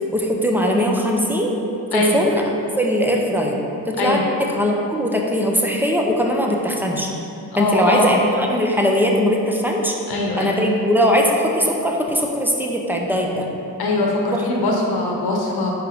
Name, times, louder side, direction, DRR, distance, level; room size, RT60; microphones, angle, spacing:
voice 1, 0.1-1.5 1.9-2.4 2.8-3.6 3.9-7.1 7.6-9.9 10.4-13.5 14.3-14.6, equal, 5° right, 0 dB, 0.8 m, -20 dB
voice 2, 7.5-8.2 10.1-10.5 13.8-15.7, left 2 dB, 75° left, -1 dB, 1.1 m, -21 dB
4.7 x 4.5 x 5.1 m, 2.7 s
cardioid pair, 65°, 38 cm